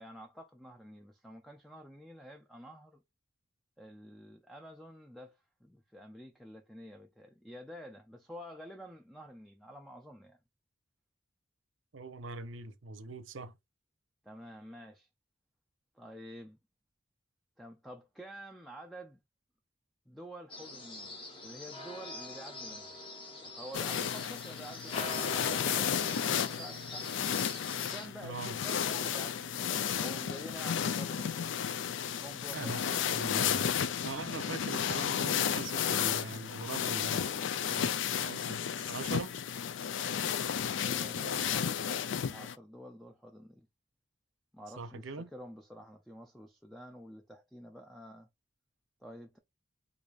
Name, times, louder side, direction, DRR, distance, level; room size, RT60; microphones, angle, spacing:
voice 1, 0.0-3.0 3.8-10.4 14.2-15.1 15.9-16.6 17.6-19.2 20.1-21.2 21.4-22.9 23.3-27.3 27.9-31.7 32.2-33.5 40.8-41.7 42.2-43.7 44.5-48.3 49.0-49.4, equal, ahead, 0.4 m, -49 dB
voice 2, 11.9-13.5 28.2-28.6 32.5-33.8 34.0-37.3 37.7-39.3 44.8-45.3, right 3 dB, 75° right, 0.7 m, -42 dB
sound 1, 20.5-28.1, left 1 dB, 25° left, 1.0 m, -44 dB
sound 2, 23.7-42.5, left 8 dB, 70° left, 0.4 m, -33 dB
4.8 x 2.6 x 2.4 m
head